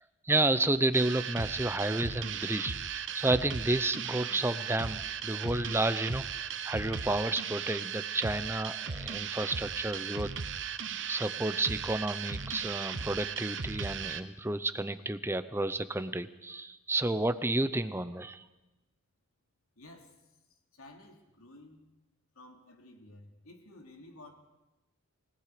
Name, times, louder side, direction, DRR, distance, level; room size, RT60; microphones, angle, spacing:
voice 1, 0.2-10.3 11.1-18.4, right 2 dB, 10° right, 12 dB, 0.7 m, -31 dB
sound 1, 0.9-14.2, right 7 dB, 55° right, 1.0 m, -37 dB
voice 2, 19.8-20.3 20.7-21.9 22.3-24.3, left 2 dB, 90° left, 2 dB, 3.3 m, -53 dB
29.0 x 18.5 x 5.1 m, 1.0 s
head